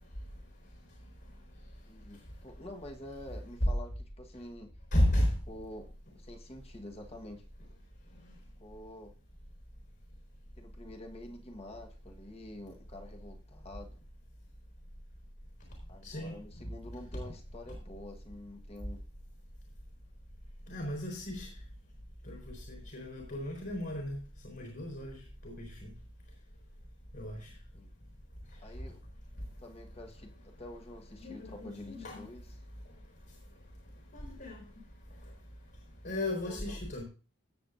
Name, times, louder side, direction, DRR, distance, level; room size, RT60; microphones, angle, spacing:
voice 1, 1.9-4.7 5.0-5.2 5.5-7.4 8.6-9.1 10.6-14.0 15.9-19.0 27.7-27.9 28.6-29.0 29.6-32.4 36.4-36.8, left 1 dB, 30° left, 3 dB, 1.3 m, -48 dB
voice 2, 4.9-5.4 8.1-8.3 16.0-16.7 17.2-17.3 20.7-21.5 22.2-25.9 27.1-27.5 31.2-32.3 34.1-34.8 35.2-35.3 36.0-37.0, left 1 dB, 55° left, 0 dB, 4.1 m, -34 dB
17.0 x 7.8 x 2.6 m, 0.34 s
head